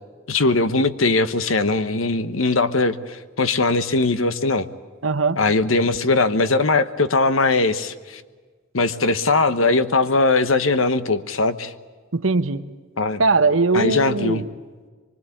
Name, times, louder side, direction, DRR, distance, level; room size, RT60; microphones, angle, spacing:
voice 1, 0.3-4.7 5.4-8.2 8.7-11.7 13.0-13.2 13.7-14.4, left 3 dB, 85° left, 12 dB, 1.2 m, -20 dB
voice 2, 5.0-5.4 12.1-12.6 13.2-14.5, right 3 dB, 80° right, 10 dB, 1.2 m, -20 dB
24.5 x 24.5 x 8.6 m, 1.5 s
head